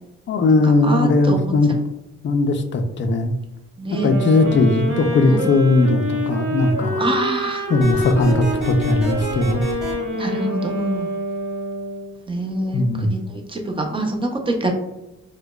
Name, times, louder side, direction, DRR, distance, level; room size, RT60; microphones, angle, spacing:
voice 1, 0.3-1.7 2.2-3.3 4.0-7.1 7.7-9.6 12.7-13.1, left 2 dB, 40° left, 6 dB, 0.4 m, -18 dB
voice 2, 0.9-1.4 1.7-1.8 3.8-4.1 5.3-5.4 7.0-7.6 10.1-11.1 12.3-13.2 13.5-14.7, right 1 dB, 15° right, 3 dB, 0.5 m, -25 dB
sound 1, 3.9-12.1, equal, 75° right, 0.9 m, -26 dB
sound 2, 7.8-9.9, right 2 dB, ahead, 1.5 m, -29 dB
4.6 x 2.2 x 2.3 m, 0.96 s
cardioid pair, 130°, 31 cm